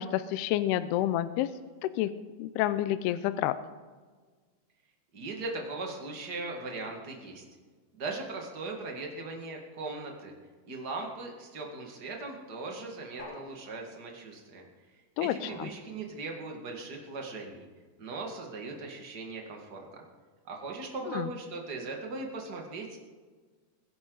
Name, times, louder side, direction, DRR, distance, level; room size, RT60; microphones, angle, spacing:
voice 1, 0.0-1.5 1.8-2.1 2.4-3.5 15.2-15.7 21.1-21.3, left 13 dB, 80° left, 13 dB, 2.4 m, -29 dB
voice 2, 5.1-7.4 7.9-10.3 10.7-14.6 15.2-17.7 18.0-20.0 20.5-23.0, right 3 dB, 50° right, 1 dB, 1.2 m, -39 dB
sound 1, 13.2-14.2 15.5-16.3, left 3 dB, 60° left, 3.8 m, -49 dB
22.0 x 11.0 x 4.0 m, 1.4 s
omnidirectional pair, 4.9 m